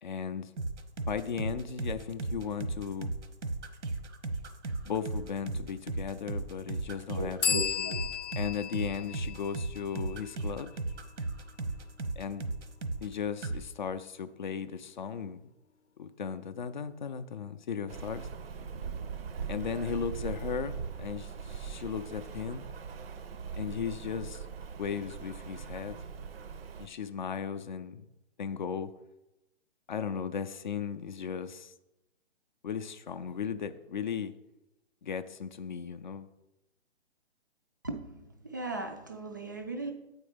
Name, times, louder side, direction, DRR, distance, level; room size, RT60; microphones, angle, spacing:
voice 1, 0.0-0.5 1.1-3.1 4.8-7.6 8.4-10.7 12.2-12.5 13.0-15.4 16.0-18.3 19.5-22.6 23.5-24.5 24.8-26.0 26.8-28.0 28.4-28.9 29.9-31.7 32.6-34.3 35.0-36.3, left 7 dB, 45° left, 0.4 m, -36 dB
sound 1, 0.6-13.1 13.4-13.6, right 3 dB, 80° right, 1.1 m, -36 dB
voice 2, 6.9-8.0 37.8-39.9, right 3 dB, 20° right, 0.3 m, -38 dB
sound 2, 7.4-11.0, left 8 dB, 85° left, 0.7 m, -35 dB
Rain, 17.9-26.9, right 6 dB, 60° right, 0.6 m, -41 dB
8.5 x 4.4 x 5.0 m
hypercardioid pair, 145°, 34 cm